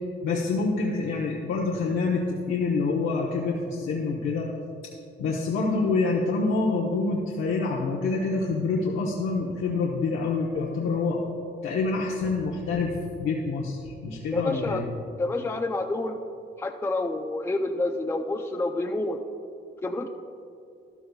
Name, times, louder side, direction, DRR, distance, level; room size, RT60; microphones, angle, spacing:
voice 1, 0.2-4.5 5.2-11.2 11.6-14.9, left 3 dB, 85° left, -2 dB, 1.0 m, -26 dB
voice 2, 14.3-14.8 15.2-16.2 16.6-19.2 19.8-20.1, left 2 dB, 10° left, 4 dB, 0.5 m, -28 dB
13.0 x 12.0 x 2.4 m, 2.5 s
cardioid pair, 90°, 20 cm